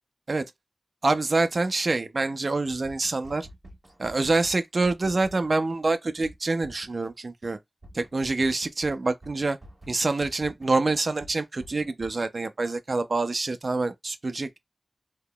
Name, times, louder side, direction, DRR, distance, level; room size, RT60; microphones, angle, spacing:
voice 1, 1.0-3.5 4.0-7.6 7.9-9.6 9.9-14.6, right 3 dB, 55° right, 0.5 m, -26 dB
sound 1, 2.7-5.5 5.8-5.9 6.2-7.1 7.4-7.5 7.8-10.7 11.0-12.1, equal, 30° right, 1.5 m, -47 dB
3.6 x 2.9 x 2.3 m
wide cardioid pair, 65°, 0 cm